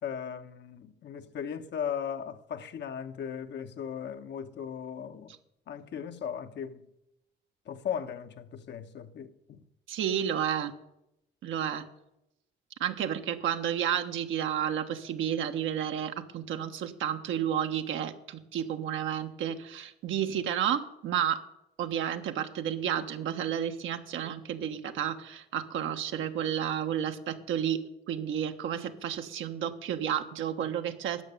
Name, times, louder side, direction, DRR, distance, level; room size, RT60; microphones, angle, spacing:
voice 1, 0.0-5.3 5.7-6.9 7.7-9.6, left 8 dB, 60° left, 1.0 m, -37 dB
voice 2, 9.9-10.7 11.4-11.9 12.8-21.4 21.8-31.2, right 9 dB, 80° right, 1.2 m, -31 dB
12.0 x 6.7 x 9.5 m
cardioid pair, 90°, 20 cm